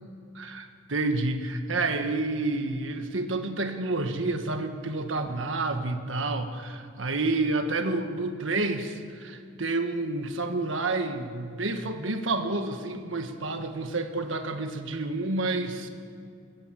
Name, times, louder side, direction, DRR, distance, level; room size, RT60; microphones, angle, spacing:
voice 1, 0.3-15.9, right 2 dB, 80° right, 6 dB, 1.5 m, -29 dB
22.0 x 16.0 x 7.6 m, 2.3 s
head